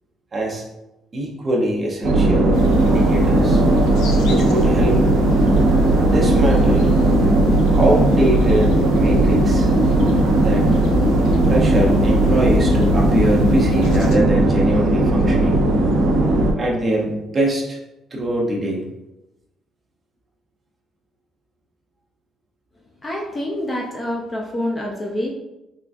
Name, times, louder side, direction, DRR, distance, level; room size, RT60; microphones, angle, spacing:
voice 1, 0.3-0.7 1.1-3.6 4.2-5.1 6.0-7.0 7.8-9.7 10.4-10.8 11.4-15.7 16.6-17.8 18.1-18.8, right 1 dB, 20° right, -2 dB, 0.6 m, -23 dB
sound 1, 2.0-16.5, right 2 dB, 60° right, 0.6 m, -17 dB
sound 2, 2.5-14.2, left 3 dB, 85° left, 0.5 m, -28 dB
voice 2, 23.0-25.3, left 1 dB, 15° left, -1 dB, 0.4 m, -26 dB
3.7 x 3.3 x 2.4 m, 0.96 s
cardioid pair, 175°, 0 cm